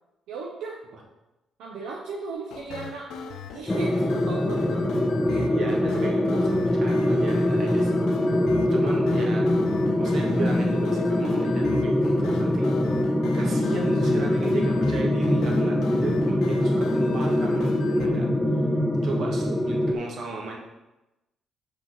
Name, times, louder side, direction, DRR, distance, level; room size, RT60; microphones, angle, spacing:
voice 1, 0.3-0.8 1.6-3.1 3.5-4.8 5.3-5.5 8.3-8.4 8.7-8.8 19.1-19.2, right 4 dB, 85° right, -2 dB, 0.8 m, -36 dB
sound 1, 2.5-18.1, left 5 dB, 90° left, 0.7 m, -39 dB
sound 2, 3.7-20.0, left 1 dB, 10° left, 0.6 m, -23 dB
voice 2, 5.5-8.4 8.7-9.5 10.0-12.7 13.3-18.3 19.0-20.6, right 3 dB, 65° right, 0 dB, 1.5 m, -35 dB
5.7 x 4.2 x 5.5 m, 0.98 s
cardioid pair, 90°, 0 cm